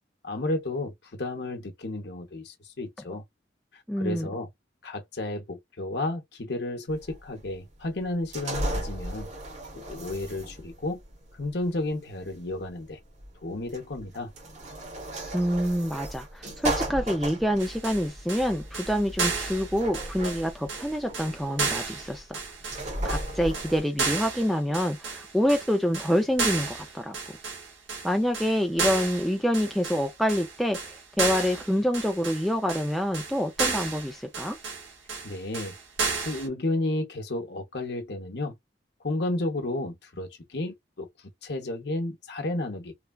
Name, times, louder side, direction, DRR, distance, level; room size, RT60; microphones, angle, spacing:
voice 1, 0.2-3.2 4.0-4.5 4.8-9.3 9.7-11.0 11.4-13.0 13.4-14.3 35.2-35.8 36.2-38.6 39.0-41.1 41.4-42.9, left 2 dB, 60° left, 0.8 m, -32 dB
voice 2, 3.9-4.3 15.3-22.4 23.0-27.2 28.0-34.6, equal, ahead, 0.3 m, -27 dB
sound 1, 6.9-23.8, right 1 dB, 35° right, 0.9 m, -36 dB
sound 2, 17.6-36.5, right 4 dB, 85° right, 0.9 m, -32 dB
3.2 x 2.3 x 2.3 m
head